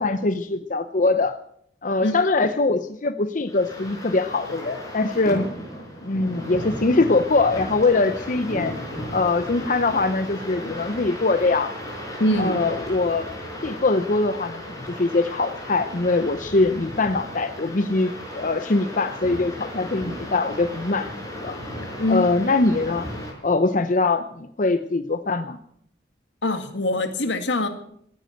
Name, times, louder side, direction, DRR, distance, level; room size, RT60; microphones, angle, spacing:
voice 1, 0.0-1.4 1.8-5.5 6.0-8.7 9.1-11.7 12.4-13.3 13.6-21.1 21.4-21.6 22.1-23.1 23.4-25.6, left 3 dB, 45° left, 10 dB, 0.7 m, -22 dB
sound 1, 3.5-23.3, equal, 20° left, 5.4 m, -35 dB
voice 2, 12.2-12.6 22.0-22.3 26.4-27.7, left 1 dB, 75° left, 8 dB, 2.0 m, -23 dB
17.0 x 10.5 x 7.7 m, 0.69 s
head